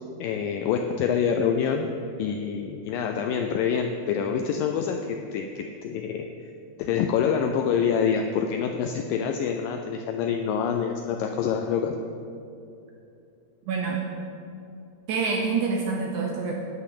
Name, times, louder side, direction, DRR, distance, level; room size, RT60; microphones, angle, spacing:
voice 1, 0.2-1.9 2.2-6.3 6.8-11.9, left 7 dB, 85° left, 4 dB, 1.9 m, -26 dB
voice 2, 13.7-14.1 15.1-16.5, right 5 dB, 80° right, 0 dB, 1.7 m, -26 dB
11.5 x 5.7 x 8.6 m, 2.6 s
omnidirectional pair, 4.6 m